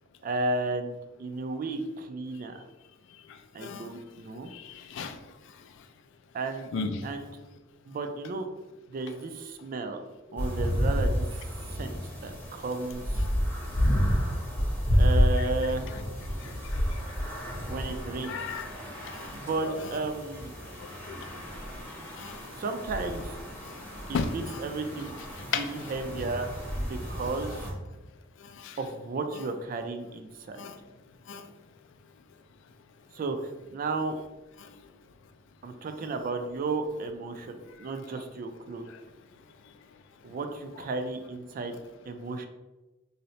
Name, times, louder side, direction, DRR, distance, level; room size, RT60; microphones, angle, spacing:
voice 1, 0.2-2.6 3.5-4.5 6.3-7.3 7.9-8.5 8.9-10.0 10.3-11.2 11.7-13.2 15.0-15.9 17.7-18.4 19.3-20.5 22.4-23.4 24.1-25.1 25.4-26.5 26.8-27.7 28.8-30.7 33.1-34.2 35.6-38.9 40.2-41.8 42.1-42.4, right 3 dB, 45° right, 7 dB, 0.3 m, -33 dB
voice 2, 4.5-5.2 6.7-6.9 16.4-16.5 18.3-18.7 19.1-19.4 21.1-21.2 22.2-22.4 24.1-24.3 24.5-24.6 25.5-25.6 28.4-28.8 30.6-30.8 31.3-31.4 34.6-34.7, left 6 dB, 65° left, 7 dB, 0.3 m, -34 dB
sound 1, 10.4-27.7, equal, 10° left, 0.7 m, -30 dB
2.7 x 2.0 x 4.0 m, 1.1 s
head